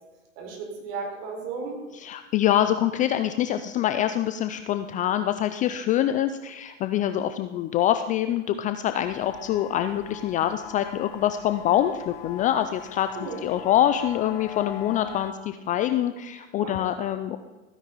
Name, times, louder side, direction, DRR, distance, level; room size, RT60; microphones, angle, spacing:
voice 1, 0.4-1.8 13.1-13.5 16.6-17.1, right 4 dB, 55° right, 0 dB, 4.6 m, -35 dB
voice 2, 2.0-13.1 13.4-17.4, left 11 dB, 20° left, 9 dB, 0.3 m, -25 dB
sound 1, 9.0-15.3, left 10 dB, 45° left, 0.9 m, -42 dB
15.5 x 9.9 x 4.1 m, 1.2 s
hypercardioid pair, 110°, 40 cm